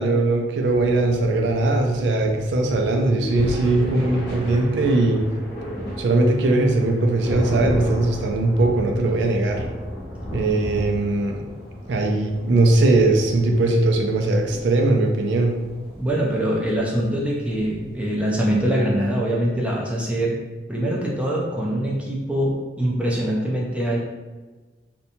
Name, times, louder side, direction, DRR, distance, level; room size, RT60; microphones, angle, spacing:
voice 1, 0.0-5.2 6.0-9.6 10.3-11.5 11.9-15.6, right 2 dB, 80° right, 3 dB, 0.3 m, -20 dB
sound 1, 0.6-19.1, equal, 75° left, 0.9 m, -34 dB
sound 2, 0.7-6.1, right 1 dB, 35° left, 0.6 m, -40 dB
voice 2, 16.0-20.3 20.7-24.0, right 1 dB, 5° right, -4 dB, 0.4 m, -23 dB
2.7 x 2.1 x 2.6 m, 1.3 s
head